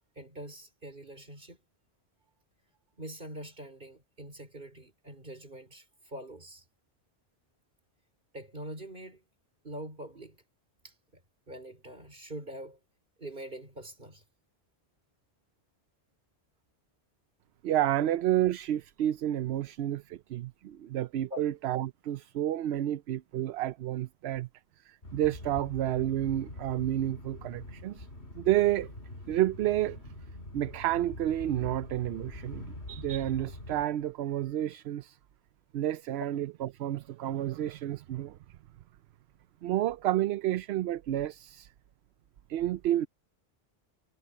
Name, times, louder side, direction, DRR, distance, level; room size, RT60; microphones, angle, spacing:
voice 1, 0.2-1.6 3.0-6.6 8.3-9.2 9.6-10.4 10.8-11.2 11.5-12.8 13.2-14.2 21.3-21.4, right 1 dB, 50° right, 4.8 m, -44 dB
voice 2, 17.6-24.5 24.8-28.1 28.3-28.9 29.3-30.0 30.5-35.2 35.7-38.4 39.6-41.7 42.5-43.1, right 12 dB, 80° right, 0.8 m, -30 dB
sound 1, 25.0-33.8, left 1 dB, 85° left, 3.9 m, -44 dB
omnidirectional pair, 1.1 m